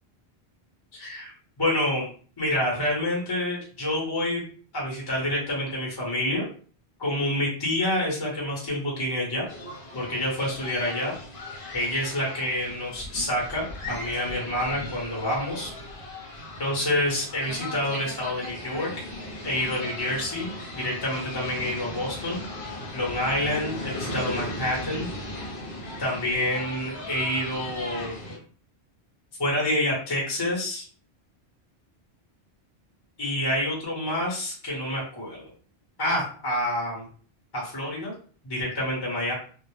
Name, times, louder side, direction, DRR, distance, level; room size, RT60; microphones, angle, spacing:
voice 1, 0.9-1.3 1.6-2.1 2.4-4.4 4.7-6.4 7.0-9.5 9.9-11.1 11.7-15.7 16.6-18.9 19.4-22.4 22.9-25.1 26.0-28.1 29.4-30.8 33.2-35.4 36.0-37.0 37.5-38.1 38.4-39.3, left 1 dB, 25° left, -4 dB, 0.7 m, -28 dB
sound 1, 9.5-28.4, left 1 dB, 60° left, 0.8 m, -37 dB
2.1 x 2.0 x 2.9 m, 0.43 s
omnidirectional pair, 1.1 m